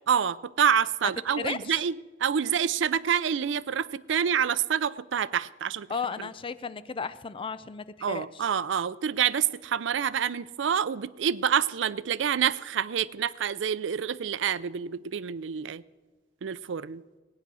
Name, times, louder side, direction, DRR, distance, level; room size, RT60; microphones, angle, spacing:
voice 1, 0.1-5.9 6.2-6.3 8.0-15.8 16.4-17.0, right 8 dB, 90° right, 18 dB, 0.4 m, -27 dB
voice 2, 1.4-1.8 5.9-8.3, left 5 dB, 30° left, 15 dB, 0.4 m, -34 dB
17.5 x 9.4 x 6.2 m, 1.3 s
head